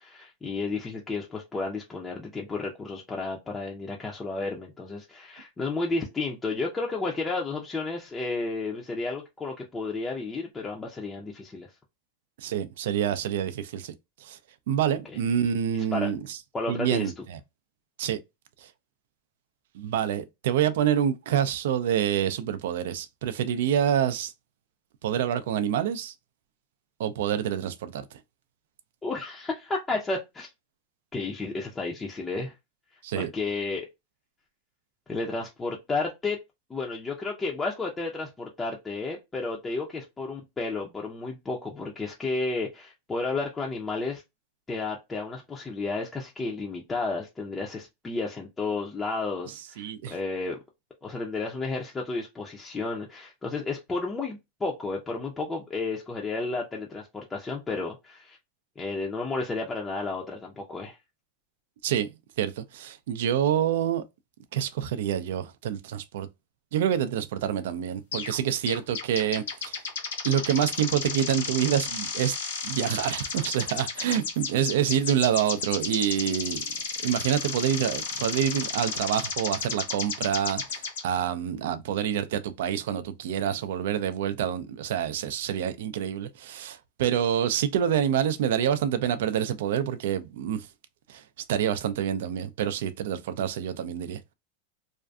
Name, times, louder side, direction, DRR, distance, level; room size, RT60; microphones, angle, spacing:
voice 1, 0.0-11.7 15.9-16.1 16.5-17.1 29.0-30.5 31.1-32.5 33.1-33.9 35.1-36.4 36.7-44.2 44.7-50.6 51.0-58.4 58.8-61.0, left 3 dB, 15° left, 0.4 m, -32 dB
voice 2, 12.4-13.9 14.2-14.4 14.7-16.4 16.7-17.4 18.0-18.2 18.6-18.7 19.7-24.3 25.0-26.1 27.0-28.2 33.0-33.3 49.8-50.2 61.8-62.1 62.4-64.0 64.5-66.3 66.7-69.8 70.2-72.3 72.6-76.7 77.0-90.7 91.1-91.2 91.5-94.2, right 9 dB, 75° right, 0.4 m, -27 dB
sound 1, 68.1-68.4 68.7-81.0, left 5 dB, 90° left, 0.9 m, -33 dB
2.5 x 2.4 x 2.2 m
supercardioid pair, 135°, 0 cm